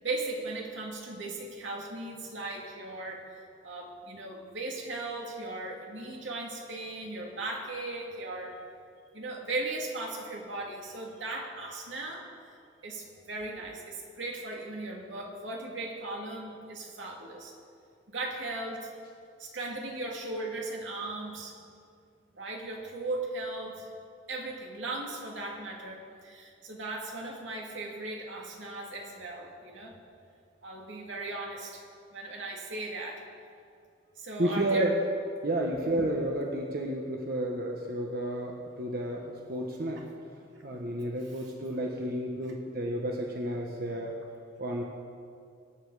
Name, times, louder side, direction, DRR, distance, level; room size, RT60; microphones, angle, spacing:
voice 1, 0.0-3.2 3.6-8.6 9.1-12.3 12.8-17.5 18.1-18.9 19.4-21.6 22.3-23.9 24.3-29.9 30.6-31.8 32.1-33.2 34.2-34.9, right 2 dB, 85° right, 0 dB, 2.6 m, -37 dB
voice 2, 34.4-35.0 35.4-40.1 40.6-44.1 44.6-44.8, right 1 dB, 55° right, 0 dB, 1.2 m, -31 dB
23.0 x 9.5 x 4.9 m, 2.4 s
head